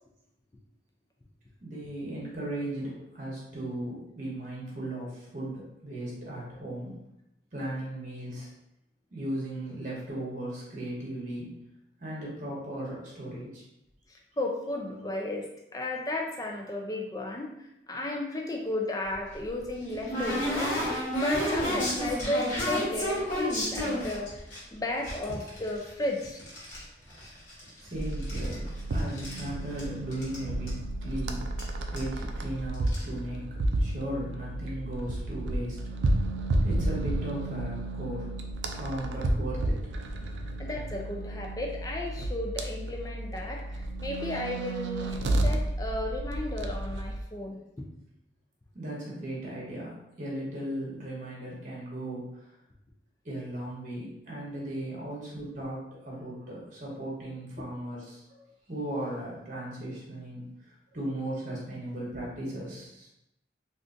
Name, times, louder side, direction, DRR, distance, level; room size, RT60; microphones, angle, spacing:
voice 1, 1.6-6.9 7.5-8.5 9.1-11.5 12.0-13.6 27.8-28.6 28.9-31.6 31.9-33.4 33.8-35.8 36.6-38.3 38.7-39.8 40.1-40.3 48.7-52.5 53.2-63.1, right 1 dB, 45° right, -5 dB, 1.1 m, -37 dB
voice 2, 14.1-24.4 24.7-26.4 40.6-45.2 45.4-47.9, left 1 dB, 20° left, 0 dB, 0.4 m, -34 dB
sound 1, 19.1-24.6 25.0-26.8 27.1-27.9 28.1-29.5 29.8-29.9 30.1-30.4 30.7-30.8 31.6-31.7 32.0-32.2 32.7-33.0, equal, 45° left, 1.1 m, -31 dB
sound 2, 27.9-47.2, right 1 dB, 85° right, 0.4 m, -32 dB
3.7 x 2.5 x 2.5 m, 0.84 s
head